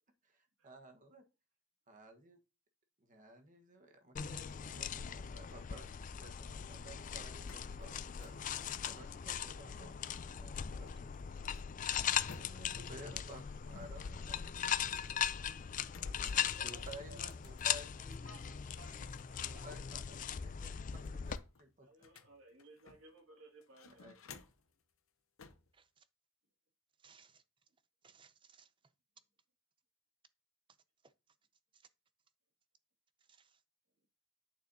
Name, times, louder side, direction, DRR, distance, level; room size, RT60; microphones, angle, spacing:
voice 1, 0.3-1.2 1.9-2.4 3.1-5.9 6.2-11.2 12.3-14.8 16.1-18.4 19.4-21.9 24.0-24.1, right 1 dB, 40° right, 1.3 m, -55 dB
sound 1, 4.2-21.4, left 8 dB, 40° left, 0.4 m, -39 dB
sound 2, 7.2-10.0 10.9-12.9 13.7-15.3 15.9-18.3 18.7-19.8 20.1-20.2 20.6-23.2 23.6-24.7 25.4-25.7, left 4 dB, 85° left, 0.7 m, -58 dB
voice 2, 16.0-17.3 18.1-19.7 21.8-24.1, right 2 dB, 85° right, 2.1 m, -59 dB
voice 3, 25.7-26.0 27.0-27.4 28.0-28.7 31.0-31.1 31.7-31.8 33.3-33.6, right 6 dB, 25° right, 0.5 m, -64 dB
8.5 x 6.7 x 2.7 m
head